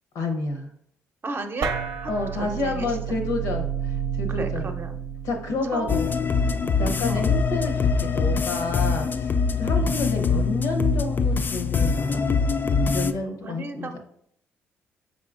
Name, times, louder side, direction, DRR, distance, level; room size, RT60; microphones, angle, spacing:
voice 1, 0.1-0.7 2.1-4.7 5.2-6.1 6.8-9.3 9.6-12.3 12.9-14.0, left 2 dB, 80° left, 4 dB, 0.8 m, -29 dB
voice 2, 1.2-3.0 4.3-4.9 5.7-6.2 7.1-7.3 9.7-9.9 13.4-14.0, right 2 dB, 40° right, 7 dB, 0.7 m, -35 dB
sound 1, 1.6-8.4, right 7 dB, 85° right, 0.5 m, -32 dB
sound 2, 5.9-13.1, left 5 dB, 35° left, 0.3 m, -23 dB
5.3 x 3.8 x 2.4 m, 0.68 s
supercardioid pair, 65°, 6 cm